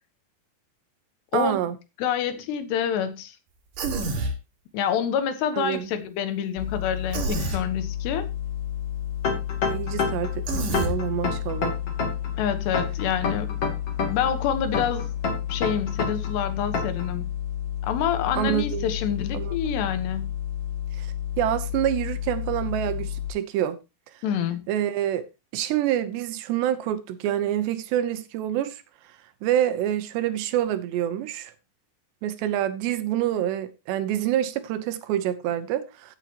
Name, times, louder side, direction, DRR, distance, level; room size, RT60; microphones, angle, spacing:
voice 1, 1.3-1.8 5.5-5.9 9.7-11.7 18.4-18.8 19.3-19.6 21.0-21.1 21.4-23.8 24.7-25.3 25.5-28.8 29.4-31.5 32.2-36.2, right 11 dB, 80° right, 3.2 m, -27 dB
voice 2, 2.0-3.4 4.7-8.3 12.4-13.6 14.1-15.1 15.5-17.3 17.8-20.3 24.2-24.6, left 8 dB, 75° left, 3.3 m, -27 dB
Human voice, 3.8-4.3 7.1-7.6 10.5-10.9, right 3 dB, 55° right, 3.4 m, -27 dB
sound 1, 6.6-23.3, left 11 dB, 55° left, 4.6 m, -31 dB
sound 2, 9.2-10.3 10.7-12.3 12.7-14.3 14.7-16.3 16.7-17.1, left 4 dB, 40° left, 3.2 m, -27 dB
15.5 x 8.6 x 2.9 m
omnidirectional pair, 5.0 m